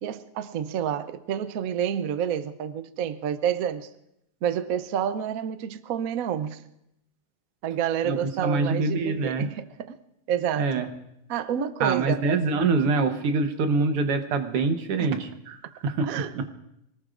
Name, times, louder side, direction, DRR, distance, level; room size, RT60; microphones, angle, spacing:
voice 1, 0.0-3.9 4.4-6.6 7.6-9.9 10.3-10.7 11.3-12.2 15.0-15.2 16.0-16.5, right 9 dB, 65° right, 0.9 m, -29 dB
voice 2, 8.0-9.5 10.6-10.9 11.8-16.5, right 4 dB, 90° right, 2.1 m, -25 dB
26.0 x 19.0 x 2.5 m
omnidirectional pair, 2.4 m